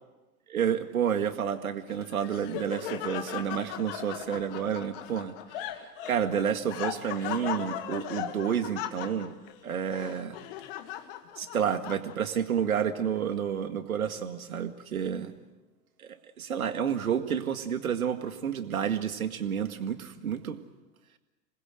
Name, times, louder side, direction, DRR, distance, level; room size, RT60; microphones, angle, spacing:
voice 1, 0.5-5.8 6.1-9.3 9.6-10.4 11.4-15.3 16.0-16.1 16.4-20.6, right 8 dB, 60° right, 9 dB, 2.1 m, -30 dB
Laughter, 1.9-12.4, left 11 dB, 35° left, 1.8 m, -38 dB
27.0 x 20.5 x 7.9 m, 1.1 s
figure-of-eight pair, 105°, 48 cm